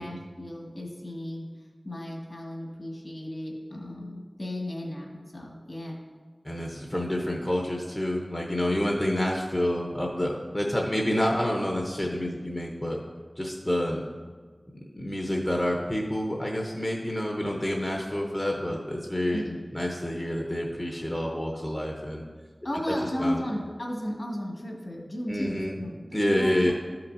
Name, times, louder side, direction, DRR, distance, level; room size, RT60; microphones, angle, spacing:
voice 1, 0.0-1.5 1.8-6.0 19.3-19.6 22.6-26.7, left 1 dB, 60° left, -2 dB, 1.9 m, -34 dB
voice 2, 6.4-13.0 13.4-14.0 14.9-19.4 19.7-22.2 23.2-23.4 25.3-25.8 26.1-26.7, left 1 dB, 25° left, -1 dB, 0.8 m, -28 dB
12.5 x 5.8 x 2.7 m, 1.5 s
wide cardioid pair, 55°, 0 cm